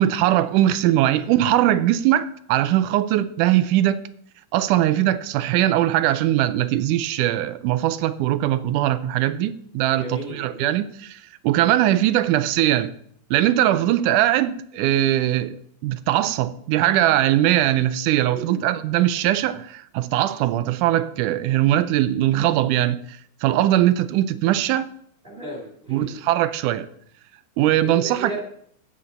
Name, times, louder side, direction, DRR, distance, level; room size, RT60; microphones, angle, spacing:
voice 1, 0.0-4.0 4.5-12.9 13.3-15.6 15.8-24.9 25.9-26.9 27.6-28.3, right 13 dB, 80° right, 1.9 m, -20 dB
voice 2, 9.9-10.8 18.3-18.7 25.2-26.2 27.8-28.4, right 2 dB, 20° right, 2.4 m, -34 dB
14.0 x 8.4 x 4.2 m
omnidirectional pair, 4.0 m